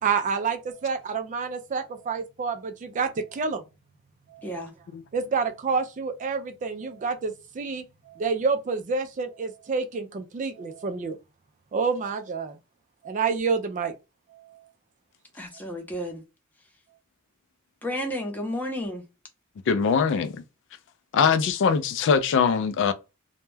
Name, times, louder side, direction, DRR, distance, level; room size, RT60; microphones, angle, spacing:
voice 1, 0.0-3.6 4.3-4.7 5.1-11.2 11.7-12.6 13.0-13.9 14.3-14.7, right 5 dB, 35° right, 0.3 m, -28 dB
voice 2, 15.3-16.2 17.8-19.0, equal, 10° left, 0.6 m, -32 dB
voice 3, 19.7-20.4 21.1-22.9, left 6 dB, 55° left, 0.3 m, -22 dB
2.2 x 2.1 x 3.1 m
head